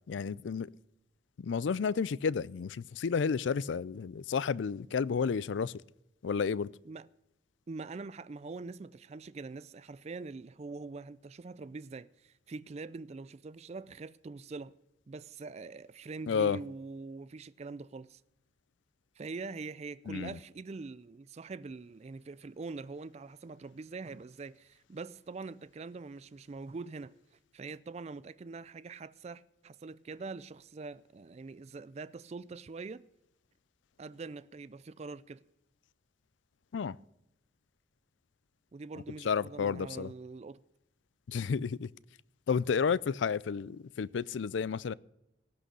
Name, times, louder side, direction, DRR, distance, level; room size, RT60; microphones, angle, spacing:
voice 1, 0.1-0.7 1.4-5.7 6.2-6.7 16.3-16.6 20.1-20.3 36.7-37.0 39.2-40.1 41.3-41.9 42.5-44.9, left 6 dB, 80° left, 0.4 m, -31 dB
voice 2, 7.7-14.7 15.1-18.2 19.2-27.1 27.5-33.1 34.0-35.4 38.7-40.6, right 3 dB, 35° right, 0.4 m, -44 dB
18.0 x 6.3 x 6.8 m
head